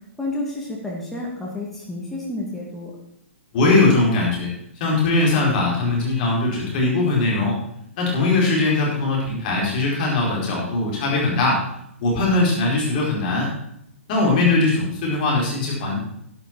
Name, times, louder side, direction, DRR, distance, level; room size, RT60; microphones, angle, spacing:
voice 1, 0.2-2.9, left 2 dB, 5° left, -5 dB, 2.4 m, -30 dB
voice 2, 3.5-4.5 4.7-7.6 8.0-11.6 12.0-13.5 14.1-16.0, left 2 dB, 40° left, -3 dB, 4.6 m, -20 dB
12.0 x 11.0 x 4.6 m, 0.73 s
figure-of-eight pair, 120°, 7 cm